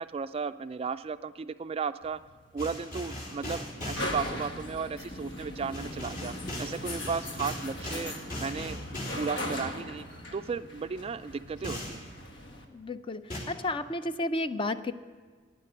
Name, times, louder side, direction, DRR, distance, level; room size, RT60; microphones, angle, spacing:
voice 1, 0.0-2.2 2.5-8.1 8.4-10.0 10.3-12.0, right 5 dB, 30° right, 12 dB, 0.3 m, -35 dB
sound 1, 2.0-12.6, left 1 dB, 75° left, 1.5 m, -39 dB
sound 2, 2.6-4.1 5.7-9.3 11.6-12.0 13.3-13.4, left 1 dB, 50° left, 3.4 m, -38 dB
voice 2, 12.7-13.2 13.5-14.9, left 2 dB, 30° left, 11 dB, 0.5 m, -32 dB
12.0 x 9.7 x 9.8 m, 1.5 s
head